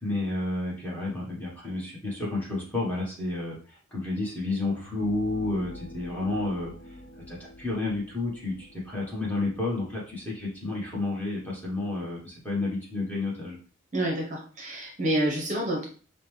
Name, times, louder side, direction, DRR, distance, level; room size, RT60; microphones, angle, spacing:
voice 1, 0.0-6.7 7.2-13.6, left 2 dB, 10° left, -5 dB, 1.2 m, -31 dB
sound 1, 4.6-10.5, left 1 dB, 45° left, 0.5 m, -47 dB
voice 2, 13.9-15.8, right 1 dB, 35° right, 0 dB, 0.7 m, -28 dB
5.1 x 2.1 x 3.1 m, 0.40 s
head